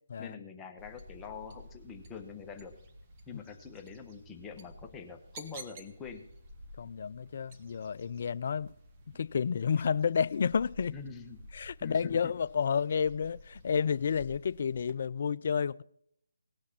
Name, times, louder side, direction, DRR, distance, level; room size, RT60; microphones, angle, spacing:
voice 1, 0.2-2.7 3.3-6.3 10.9-11.4 11.8-12.3, left 6 dB, 10° left, 1.0 m, -45 dB
sound 1, 0.8-14.9, equal, 25° right, 1.6 m, -52 dB
voice 2, 6.8-8.7 9.1-10.9 11.5-15.8, left 6 dB, 45° left, 0.4 m, -30 dB
19.0 x 6.4 x 5.9 m
figure-of-eight pair, 150°, 0 cm